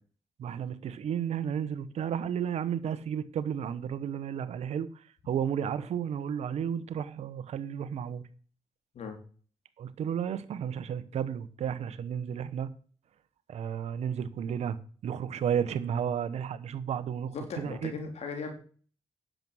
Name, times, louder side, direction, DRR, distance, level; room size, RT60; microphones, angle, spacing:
voice 1, 0.4-4.9 5.3-8.2 9.8-12.7 13.5-14.8 15.0-17.9, right 8 dB, 80° right, 1.1 m, -32 dB
voice 2, 17.3-18.5, left 5 dB, 75° left, 3.7 m, -37 dB
10.5 x 7.6 x 6.4 m
supercardioid pair, 50°, 11 cm